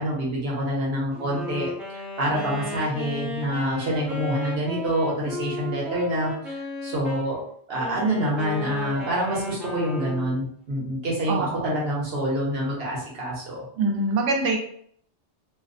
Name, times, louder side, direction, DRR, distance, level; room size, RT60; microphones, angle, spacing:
voice 1, 0.0-7.4 7.7-13.6, right 1 dB, 60° right, -4 dB, 1.1 m, -27 dB
Wind instrument woodwind instrument, 1.1-7.3 7.8-10.4, left 2 dB, ahead, 0.4 m, -34 dB
voice 2, 11.3-11.9 13.8-14.6, right 2 dB, 85° right, 2 dB, 0.9 m, -25 dB
2.7 x 2.1 x 2.5 m, 0.63 s
omnidirectional pair, 1.2 m